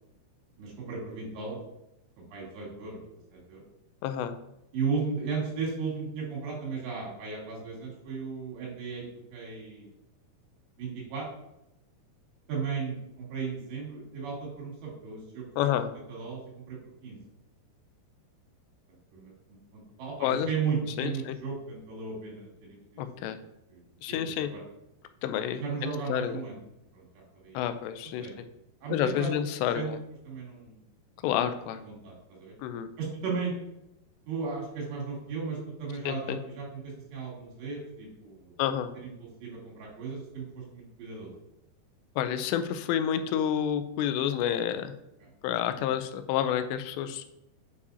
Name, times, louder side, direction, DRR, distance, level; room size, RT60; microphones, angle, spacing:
voice 1, 0.6-1.6 2.2-3.0 3.3-3.7 4.7-9.0 9.3-9.9 10.8-11.3 12.5-15.8 16.1-16.4 16.7-17.2 18.9-23.4 23.7-24.6 25.6-26.6 26.9-27.1 27.3-27.6 28.2-28.3 28.8-29.3 29.7-30.0 30.2-30.8 31.8-32.5 33.0-33.5 34.3-38.5 39.0-41.3 45.2-45.3, right 5 dB, 85° right, -3 dB, 4.3 m, -36 dB
voice 2, 4.0-4.3 15.6-15.9 20.2-20.5 21.0-21.4 23.0-23.4 24.0-24.5 25.2-26.4 27.5-28.3 28.9-30.0 31.2-31.8 32.6-32.9 36.0-36.4 38.6-38.9 42.2-44.9 45.4-47.3, left 10 dB, 90° left, 9 dB, 2.7 m, -29 dB
8.4 x 4.8 x 2.7 m, 0.85 s
omnidirectional pair, 4.9 m